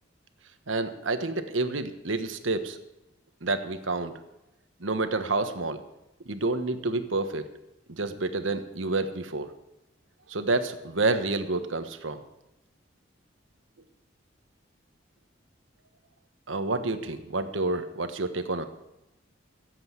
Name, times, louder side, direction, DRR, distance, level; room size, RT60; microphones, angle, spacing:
voice 1, 0.7-2.8 3.4-4.1 4.8-5.8 6.3-7.4 7.9-9.5 10.3-12.2 16.5-18.7, right 3 dB, 85° right, 9 dB, 1.3 m, -29 dB
16.0 x 8.1 x 8.1 m, 0.92 s
head